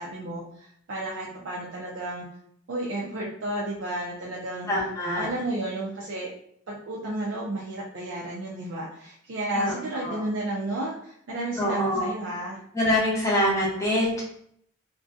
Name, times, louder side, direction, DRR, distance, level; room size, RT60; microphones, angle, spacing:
voice 1, 0.0-2.2 2.7-4.7 5.1-6.3 6.7-12.6, right 1 dB, 75° right, -5 dB, 0.5 m, -32 dB
voice 2, 4.7-5.3 9.5-9.7 10.0-10.2 11.6-12.1 12.7-14.2, left 1 dB, 15° left, -5 dB, 0.7 m, -25 dB
2.6 x 2.2 x 2.5 m, 0.67 s
head